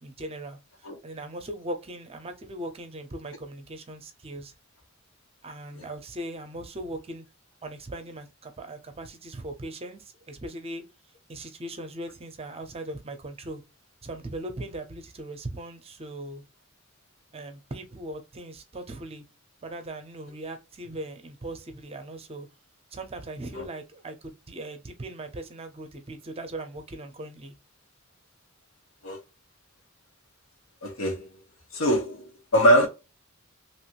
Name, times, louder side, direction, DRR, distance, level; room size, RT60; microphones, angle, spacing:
voice 1, 0.0-4.5 5.4-7.2 7.6-10.8 11.3-13.6 14.0-16.4 17.3-19.2 19.6-22.5 22.9-27.5, right 1 dB, 30° right, 0.6 m, -39 dB
voice 2, 30.8-31.3 31.7-32.9, equal, 80° left, 1.2 m, -23 dB
3.0 x 2.5 x 2.9 m
head